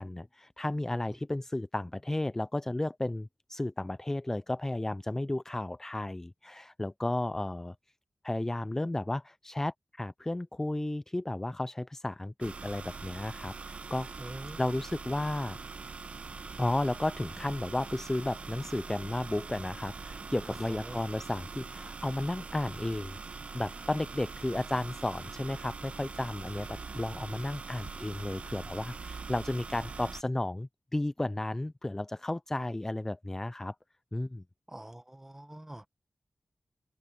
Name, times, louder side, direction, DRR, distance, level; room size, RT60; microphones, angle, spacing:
voice 1, 0.0-7.7 8.2-15.6 16.6-23.2 23.5-33.8 34.1-34.4, left 1 dB, 20° left, 0.4 m, -33 dB
sound 1, 12.4-30.2, right 4 dB, 65° right, 1.2 m, -43 dB
voice 2, 14.2-14.6 20.7-21.0 34.7-35.9, right 1 dB, 15° right, 1.0 m, -45 dB
open air
cardioid pair, 55°, 2 cm